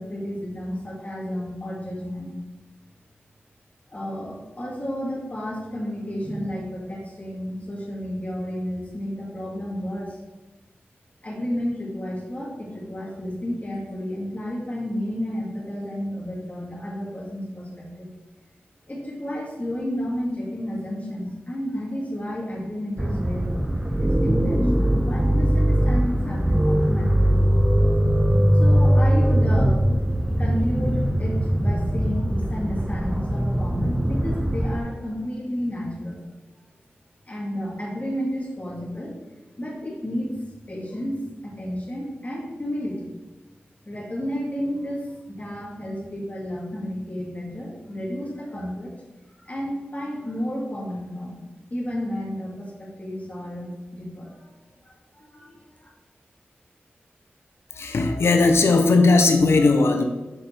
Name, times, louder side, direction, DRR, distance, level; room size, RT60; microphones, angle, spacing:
voice 1, 0.0-2.3 3.9-10.2 11.2-18.1 18.9-23.6 23.9-27.5 28.6-29.8 30.2-36.2 37.3-40.4 40.7-43.1 43.9-48.9 49.4-51.4 51.7-54.5 54.8-55.9, equal, 35° left, -4 dB, 2.1 m, -31 dB
sound 1, 23.0-34.8, equal, 15° right, 0.6 m, -21 dB
voice 2, 57.7-60.0, left 3 dB, 80° left, 5 dB, 0.7 m, -18 dB
6.5 x 4.9 x 4.4 m, 1.1 s
cardioid pair, 45°, 4 cm